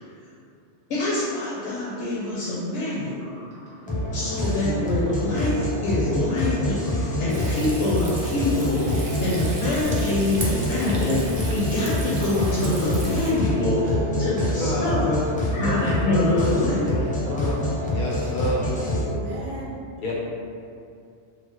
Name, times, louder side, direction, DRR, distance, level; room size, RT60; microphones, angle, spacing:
voice 1, 0.9-3.2 4.1-15.2 15.5-16.8, left 2 dB, 75° left, -7 dB, 0.9 m, -25 dB
sound 1, 3.1-13.7, equal, 70° right, 1.4 m, -43 dB
sound 2, 3.9-19.0, left 1 dB, 10° left, 0.5 m, -26 dB
Frying (food), 7.3-13.3, right 1 dB, 50° right, 0.4 m, -35 dB
voice 2, 13.9-15.1 15.5-18.9 20.0-20.1, left 1 dB, 55° left, -4 dB, 0.6 m, -30 dB
voice 3, 18.9-19.8 20.0-20.1, right 2 dB, 85° right, -8 dB, 1.3 m, -35 dB
4.0 x 2.0 x 3.0 m, 2.4 s
omnidirectional pair, 1.2 m